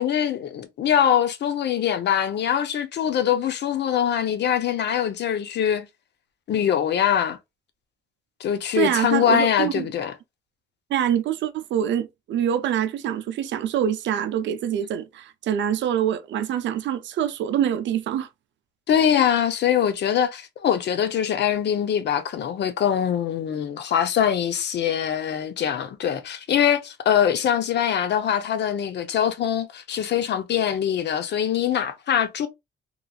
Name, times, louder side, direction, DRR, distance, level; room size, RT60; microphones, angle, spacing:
voice 1, 0.0-5.9 6.5-7.4 8.4-10.1 18.9-32.5, left 9 dB, 60° left, 0.6 m, -23 dB
voice 2, 8.7-9.9 10.9-18.3, right 10 dB, 65° right, 0.4 m, -25 dB
3.0 x 2.4 x 2.3 m
cardioid pair, 90°, 20 cm